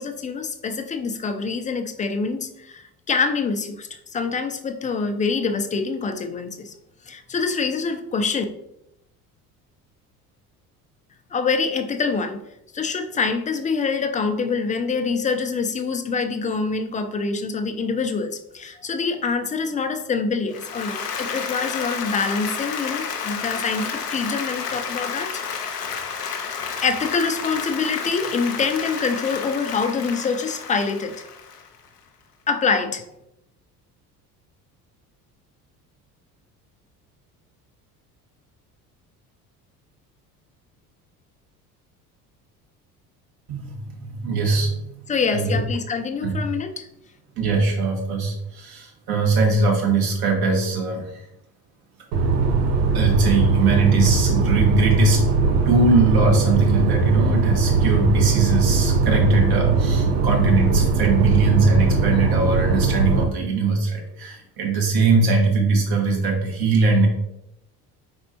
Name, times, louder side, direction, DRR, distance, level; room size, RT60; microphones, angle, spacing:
voice 1, 0.0-6.7 7.1-8.4 11.3-12.4 12.7-25.4 26.8-31.1 32.5-33.1 45.1-46.9, left 4 dB, 15° left, 7 dB, 0.4 m, -25 dB
Applause, 20.5-31.9, left 6 dB, 90° left, 0.6 m, -31 dB
voice 2, 44.2-44.8 45.3-45.6 46.2-46.3 47.4-51.0 52.9-55.3 55.6-67.1, right 3 dB, 50° right, 0 dB, 1.5 m, -21 dB
sound 1, 52.1-63.2, right 4 dB, 75° right, 0.7 m, -20 dB
4.4 x 4.1 x 2.8 m, 0.82 s
figure-of-eight pair, 60°, 47 cm